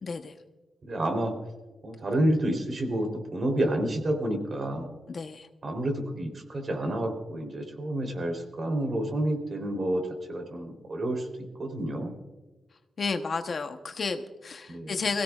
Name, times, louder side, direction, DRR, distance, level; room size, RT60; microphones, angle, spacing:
voice 1, 0.0-0.3 5.1-5.5 13.0-15.2, left 4 dB, 50° left, 7 dB, 1.0 m, -32 dB
voice 2, 0.8-1.3 1.8-4.9 5.6-12.1 14.7-15.0, right 1 dB, 45° right, 3 dB, 3.5 m, -29 dB
23.0 x 16.5 x 2.4 m, 1.2 s
wide cardioid pair, 110°, 0 cm